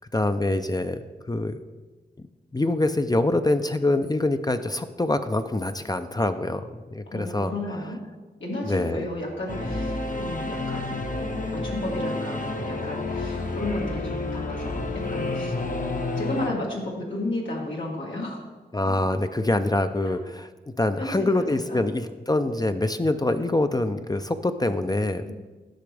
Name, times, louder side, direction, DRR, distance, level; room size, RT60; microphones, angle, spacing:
voice 1, 0.1-1.0 1.3-1.6 2.5-6.6 6.9-7.5 8.6-9.1 18.7-20.5 20.8-25.2, left 2 dB, 20° left, 9 dB, 0.5 m, -25 dB
voice 2, 7.1-8.0 8.4-11.0 11.4-15.5 16.1-18.4 18.9-19.0 20.0-20.2 21.0-21.8 25.3-25.4, left 1 dB, 90° left, -4 dB, 1.9 m, -33 dB
Singing / Musical instrument, 9.5-16.5, left 2 dB, 45° left, 0.9 m, -30 dB
10.0 x 6.0 x 3.4 m, 1.3 s
cardioid pair, 45°, 19 cm